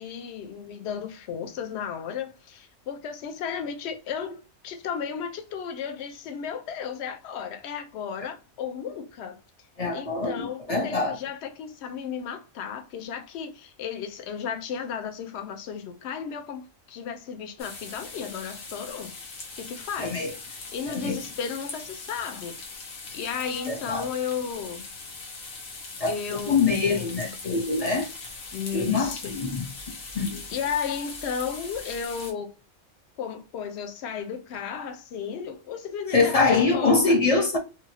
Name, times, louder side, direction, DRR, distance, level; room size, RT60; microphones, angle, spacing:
voice 1, 0.0-9.4 9.9-19.1 19.6-22.6 23.1-24.8 26.1-27.2 28.5-29.4 29.9-30.1 30.5-32.6 33.2-37.2, left 7 dB, 65° left, 0.8 m, -34 dB
voice 2, 9.8-11.2 20.0-20.3 21.0-21.2 23.7-24.1 26.0-28.1 28.7-29.6 30.1-30.4 36.1-37.6, left 4 dB, 40° left, 0.5 m, -24 dB
sound 1, 17.6-32.3, left 3 dB, 85° left, 1.3 m, -40 dB
2.7 x 2.7 x 2.8 m
omnidirectional pair, 1.4 m